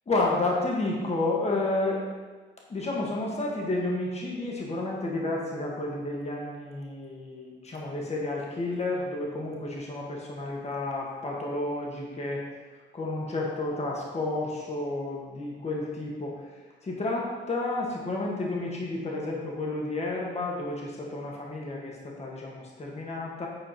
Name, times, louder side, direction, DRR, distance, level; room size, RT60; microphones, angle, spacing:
voice 1, 0.1-2.0 2.7-12.4 12.9-16.3 16.8-23.5, left 2 dB, 35° left, -2 dB, 1.9 m, -31 dB
8.8 x 4.6 x 4.5 m, 1.3 s
cardioid pair, 90°, 20 cm